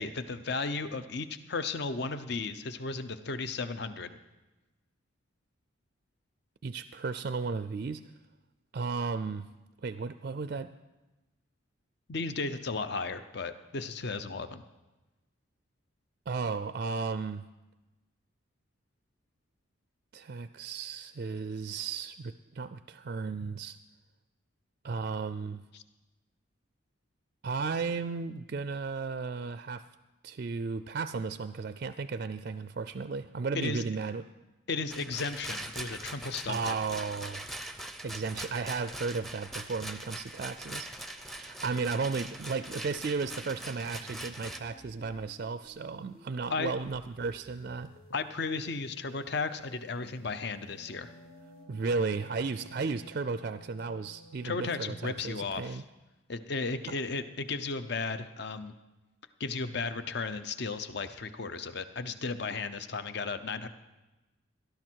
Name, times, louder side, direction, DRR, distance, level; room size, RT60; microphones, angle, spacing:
voice 1, 0.0-4.1 12.1-14.6 25.7-25.8 33.5-33.8 34.7-36.8 46.5-46.7 48.1-51.1 54.4-55.8 56.3-58.7 59.4-63.7, left 4 dB, 55° left, 11 dB, 0.7 m, -35 dB
voice 2, 6.6-8.0 8.7-9.5 9.8-10.7 16.3-17.4 20.1-23.8 24.8-25.6 27.4-29.8 30.2-34.3 36.5-37.5 38.0-40.9 41.3-47.9 51.7-55.8, right 4 dB, 45° right, 12 dB, 0.4 m, -34 dB
Rattle, 34.9-44.6, right 1 dB, ahead, 0.6 m, -42 dB
sound 1, 41.6-51.6, left 1 dB, 80° left, 4.2 m, -57 dB
Wind instrument woodwind instrument, 49.9-55.1, right 1 dB, 35° left, 2.8 m, -56 dB
18.5 x 11.5 x 4.6 m, 1.1 s
head